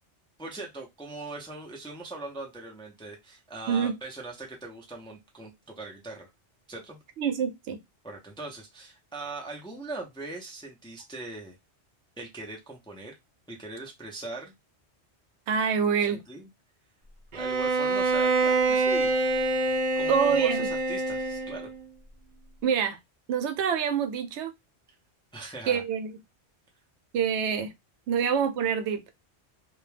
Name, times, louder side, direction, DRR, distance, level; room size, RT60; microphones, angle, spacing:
voice 1, 0.4-6.3 6.7-7.0 8.0-11.6 12.2-13.2 13.5-14.5 15.9-16.5 17.3-19.1 20.0-21.7 25.3-25.8, right 2 dB, 10° left, 0.3 m, -40 dB
voice 2, 7.2-7.8 15.5-16.2 20.1-20.7 22.6-23.0 23.3-24.5 25.7-26.1 27.1-27.7 28.1-29.0, right 7 dB, 85° right, 0.9 m, -26 dB
Bowed string instrument, 17.3-21.7, right 2 dB, 55° right, 0.6 m, -26 dB
2.2 x 2.1 x 3.2 m
omnidirectional pair, 1.1 m